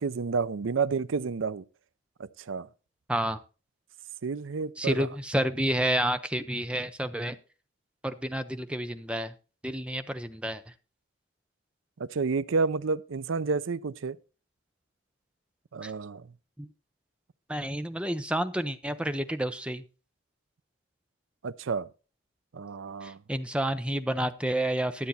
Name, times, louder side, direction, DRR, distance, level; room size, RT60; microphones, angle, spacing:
voice 1, 0.0-1.6 2.2-2.7 4.2-5.1 12.0-14.2 15.7-16.3 21.4-21.9 22.5-23.2, right 4 dB, 85° right, 0.5 m, -30 dB
voice 2, 3.1-3.4 4.8-7.4 8.0-9.3 9.6-10.6 15.8-15.9 16.6-16.7 17.5-19.8 23.0-25.1, right 1 dB, 5° right, 0.6 m, -30 dB
12.5 x 8.2 x 4.2 m
head